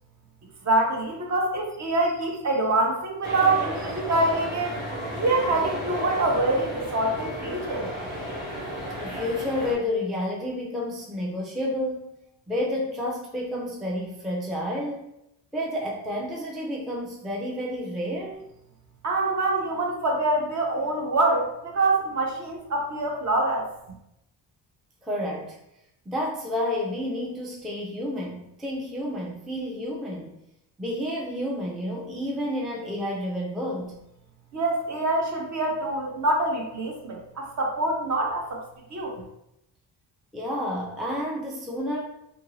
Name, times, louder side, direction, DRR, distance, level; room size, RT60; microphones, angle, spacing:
voice 1, 0.6-4.8 5.2-7.9 19.0-23.7 34.5-38.6 38.9-39.1, right 2 dB, 40° right, 1 dB, 0.7 m, -25 dB
sound 1, 3.2-9.7, equal, 80° right, 1.5 m, -33 dB
voice 2, 9.0-12.2 12.5-15.1 15.5-18.4 25.0-25.6 26.1-30.4 30.8-34.0 40.3-42.0, left 1 dB, ahead, -3 dB, 0.3 m, -30 dB
2.7 x 2.5 x 2.9 m, 0.84 s
cardioid pair, 115°, 45 cm